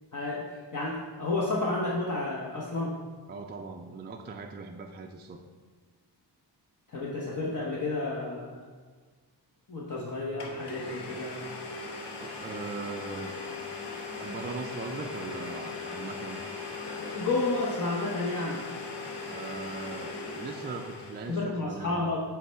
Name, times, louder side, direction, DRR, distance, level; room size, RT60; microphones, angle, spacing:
voice 1, 0.1-0.4 0.7-2.9 6.9-8.7 9.7-11.5 16.8-18.6 21.3-22.3, left 2 dB, 45° left, -4 dB, 1.0 m, -31 dB
voice 2, 3.3-5.4 12.2-13.4 14.2-16.4 19.2-22.1, right 4 dB, 25° right, 3 dB, 0.4 m, -40 dB
Domestic sounds home sounds, 9.9-10.0 10.4-21.4, left 4 dB, 70° left, 1.1 m, -39 dB
8.2 x 3.4 x 4.5 m, 1.5 s
wide cardioid pair, 115°, 42 cm